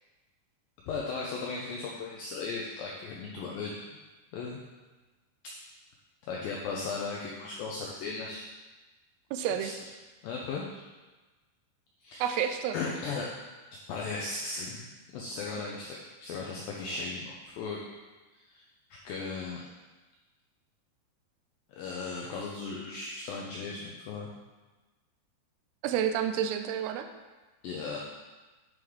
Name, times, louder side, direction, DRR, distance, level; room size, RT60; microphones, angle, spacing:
voice 1, 0.9-3.8 4.3-4.6 6.2-8.4 9.6-9.7 10.2-10.8 12.0-12.4 12.7-13.3 13.9-14.9 15.1-16.0 16.2-17.8 18.3-18.6 19.0-19.7 21.8-24.3 27.6-28.0, left 4 dB, 85° left, -3 dB, 2.0 m, -36 dB
voice 2, 9.3-9.7 12.2-12.8 25.8-27.1, right 9 dB, 85° right, 7 dB, 2.4 m, -29 dB
8.8 x 6.7 x 3.6 m, 1.2 s
omnidirectional pair, 5.2 m